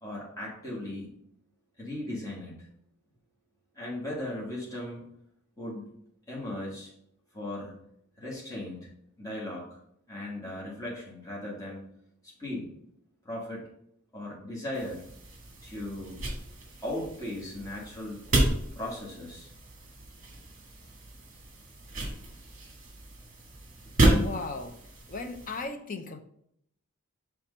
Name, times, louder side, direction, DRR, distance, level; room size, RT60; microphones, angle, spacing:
voice 1, 0.0-1.1 1.8-2.6 3.7-5.1 5.6-5.9 6.3-6.9 7.3-7.7 8.2-8.9 9.2-9.8 10.1-11.8 12.2-12.7 13.2-13.7 14.1-15.0 15.6-16.2 16.8-18.2 18.7-19.5, left 1 dB, 15° left, -5 dB, 1.6 m, -37 dB
sound 1, 14.7-25.7, right 1 dB, 35° right, 1.5 m, -31 dB
voice 2, 24.2-24.8 25.1-26.2, left 3 dB, 40° left, 8 dB, 0.6 m, -36 dB
5.9 x 3.4 x 5.1 m, 0.71 s
head